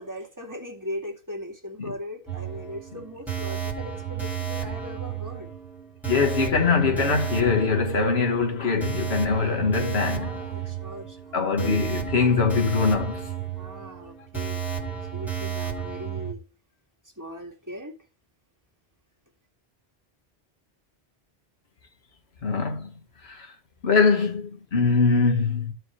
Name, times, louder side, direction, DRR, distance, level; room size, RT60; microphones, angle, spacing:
voice 1, 0.0-5.5 10.1-11.4 13.6-16.4 17.2-18.0, left 1 dB, 15° right, 2.3 m, -39 dB
sound 1, 2.3-16.3, right 8 dB, ahead, 1.9 m, -32 dB
voice 2, 6.1-10.4 11.3-13.2 22.4-23.5 23.8-25.7, left 5 dB, 70° left, 1.8 m, -23 dB
14.5 x 5.0 x 3.2 m
omnidirectional pair, 1.1 m